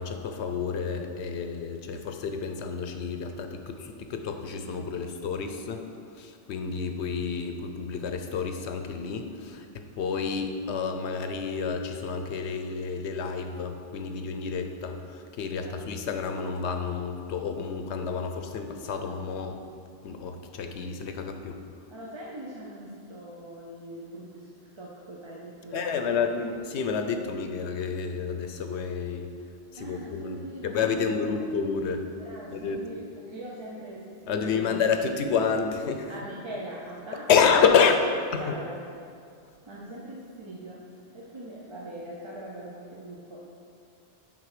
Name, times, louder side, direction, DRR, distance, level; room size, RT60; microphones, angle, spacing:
voice 1, 0.0-19.6 20.0-21.6 25.7-29.3 29.7-32.1 32.5-32.8 34.3-36.1 37.3-38.0 38.3-38.5, left 6 dB, 85° left, 6 dB, 1.0 m, -29 dB
voice 2, 21.9-26.3 29.8-31.4 32.2-34.9 36.1-37.3 37.6-37.8 38.4-38.8 39.7-43.5, right 1 dB, 30° right, -4 dB, 0.7 m, -42 dB
7.7 x 5.5 x 4.9 m, 2.4 s
omnidirectional pair, 1.1 m